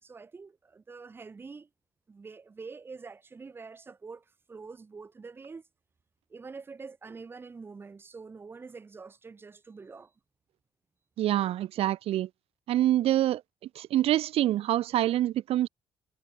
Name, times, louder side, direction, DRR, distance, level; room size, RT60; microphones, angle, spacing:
voice 1, 0.0-1.7 2.1-5.6 6.3-10.1, right 4 dB, 20° right, 5.9 m, -46 dB
voice 2, 11.2-12.3 12.7-13.4 13.7-15.7, right 13 dB, 70° right, 2.3 m, -26 dB
cardioid pair, 170°, 10 cm